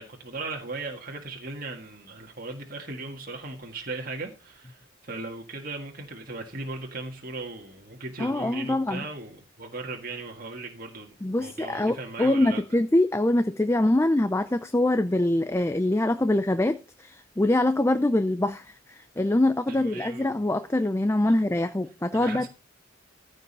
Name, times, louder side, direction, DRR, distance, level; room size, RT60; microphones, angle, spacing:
voice 1, 0.0-12.6 19.7-20.4 21.3-21.4 22.1-22.5, right 3 dB, 45° right, 1.8 m, -38 dB
voice 2, 8.2-9.0 11.2-22.5, left 1 dB, 10° left, 0.4 m, -24 dB
14.5 x 5.3 x 5.3 m
head